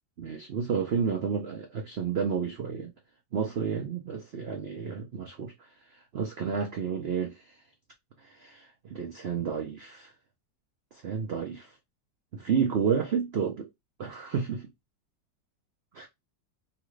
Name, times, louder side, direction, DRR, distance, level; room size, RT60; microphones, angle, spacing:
voice 1, 0.2-2.9 3.3-5.5 6.1-7.5 8.2-10.1 11.0-11.7 12.3-13.7 14.0-14.7 15.9-16.1, right 6 dB, 90° right, 0.5 m, -31 dB
3.0 x 2.4 x 3.0 m
omnidirectional pair, 1.9 m